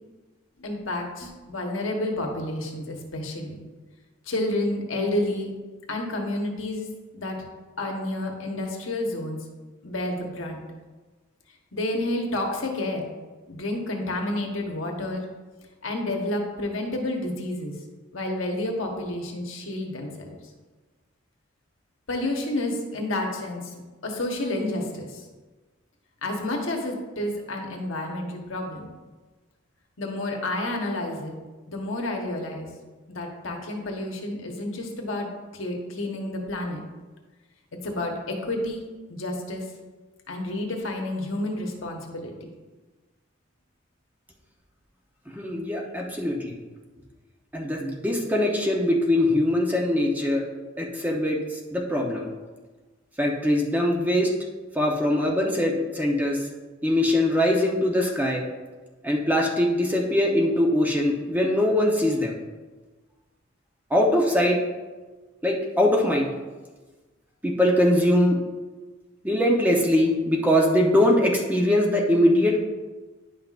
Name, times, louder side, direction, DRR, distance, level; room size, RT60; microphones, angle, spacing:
voice 1, 0.6-3.6 4.3-5.5 5.9-6.9 7.1-7.4 7.8-9.4 9.8-10.6 11.7-13.0 13.5-15.2 15.8-17.7 18.1-20.4 22.1-23.6 24.0-25.2 26.2-28.9 30.0-31.3 31.7-32.7 33.1-35.3 35.5-36.8 37.8-38.8 39.1-39.6 40.3-42.3, left 1 dB, 75° left, 2 dB, 1.2 m, -30 dB
voice 2, 45.3-46.5 47.5-50.4 50.8-51.4 51.7-52.3 53.2-54.3 54.7-56.4 56.8-58.4 59.0-62.3 63.9-64.6 65.4-66.3 67.4-68.4 69.2-72.6, left 1 dB, 10° right, -1 dB, 0.8 m, -22 dB
10.5 x 5.7 x 2.5 m, 1.3 s
head